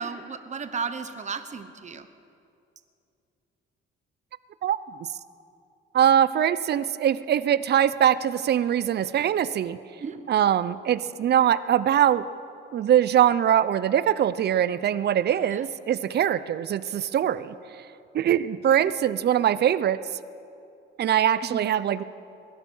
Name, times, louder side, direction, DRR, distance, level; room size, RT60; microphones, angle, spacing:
voice 1, 0.0-2.1 10.0-10.2 15.5-15.6 21.4-21.7, right 5 dB, 35° right, 9 dB, 1.0 m, -34 dB
voice 2, 5.9-9.8 10.3-12.3 12.7-17.5 18.1-20.0 21.0-22.0, right 10 dB, 55° right, 16 dB, 0.6 m, -22 dB
21.0 x 12.0 x 5.6 m, 2.6 s
cardioid pair, 90°, 20 cm